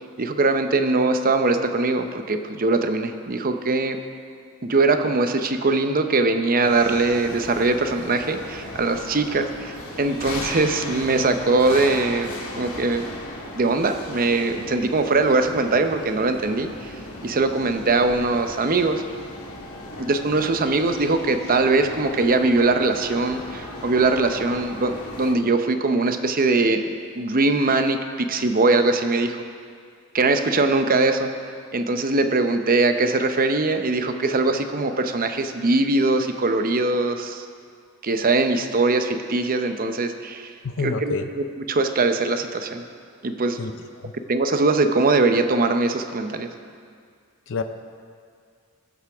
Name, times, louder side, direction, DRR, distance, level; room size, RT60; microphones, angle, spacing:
voice 1, 0.2-4.0 4.6-13.1 13.6-16.9 17.2-19.0 20.0-26.9 27.2-29.4 30.1-31.3 31.7-37.5 38.0-40.5 40.8-41.1 41.7-42.8 43.2-43.6 44.3-46.5, right 3 dB, 40° right, 7 dB, 0.7 m, -21 dB
sound 1, 6.6-25.3, left 1 dB, 80° left, 1.8 m, -37 dB
voice 2, 40.6-41.2 43.6-43.7 44.0-44.1 47.5-47.6, left 4 dB, 60° left, 8 dB, 0.6 m, -27 dB
21.0 x 8.0 x 3.5 m, 2.2 s
head